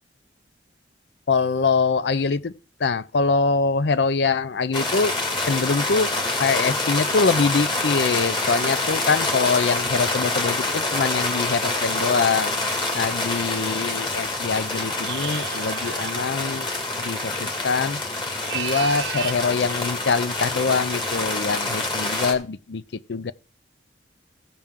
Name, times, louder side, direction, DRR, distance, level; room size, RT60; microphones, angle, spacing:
voice 1, 1.3-2.5 2.8-5.1 5.4-6.1 6.4-12.5 12.9-16.7 17.0-18.0 18.5-22.8 23.1-23.3, left 4 dB, 75° left, 0.5 m, -24 dB
sound 1, 4.7-22.3, left 2 dB, 25° left, 1.8 m, -26 dB
sound 2, 15.0-16.2 18.3-19.4, right 9 dB, 75° right, 0.8 m, -33 dB
16.0 x 5.9 x 3.7 m
head